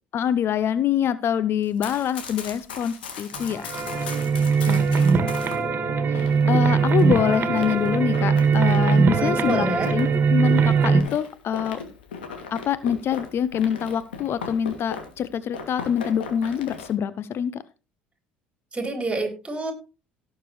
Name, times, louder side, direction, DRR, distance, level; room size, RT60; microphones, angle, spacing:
voice 1, 0.1-3.7 4.6-5.1 6.1-11.8 12.5-17.6, left 9 dB, 50° left, 16 dB, 0.7 m, -25 dB
Run, 1.6-5.6 6.1-15.2 15.5-16.9, left 5 dB, 85° left, 2.6 m, -38 dB
sound 1, 3.3-11.0, right 5 dB, 40° right, 1.9 m, -21 dB
voice 2, 9.2-9.9 18.7-19.7, right 2 dB, 20° right, 3 dB, 4.0 m, -27 dB
17.5 x 6.7 x 3.2 m, 0.30 s
hypercardioid pair, 60°, 5 cm